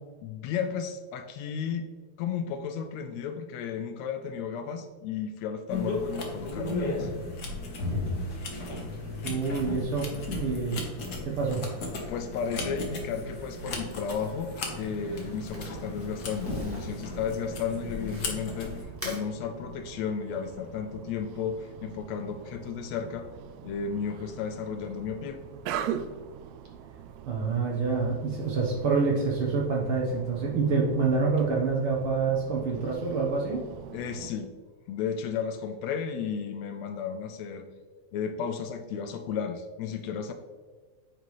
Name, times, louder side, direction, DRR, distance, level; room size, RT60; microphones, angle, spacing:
voice 1, 0.2-1.9 2.2-7.1 12.1-23.3 23.6-25.4 33.9-34.5 34.9-37.7 38.1-40.3, left 7 dB, 80° left, 7 dB, 1.8 m, -33 dB
sound 1, 5.7-18.8, left 2 dB, 55° left, 1.1 m, -35 dB
voice 2, 9.2-10.8 11.2-11.6 27.3-33.6, right 4 dB, 60° right, -2 dB, 1.5 m, -27 dB
Crumpling crinkling, 13.9-18.5 18.9-19.3, equal, 5° right, 1.1 m, -45 dB
sound 2, 14.7-34.3, right 9 dB, 80° right, 1.6 m, -43 dB
9.2 x 5.2 x 3.1 m, 1.4 s
omnidirectional pair, 3.3 m